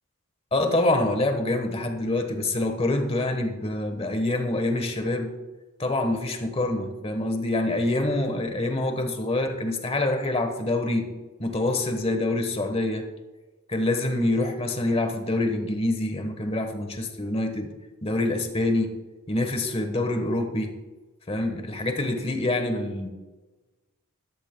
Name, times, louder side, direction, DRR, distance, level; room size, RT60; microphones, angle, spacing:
voice 1, 0.5-5.3 5.8-11.1 11.4-13.0 13.7-17.7 18.0-18.9 19.3-20.7 21.3-23.1, left 2 dB, 25° left, 5 dB, 1.2 m, -26 dB
14.0 x 12.0 x 2.2 m, 1.2 s
head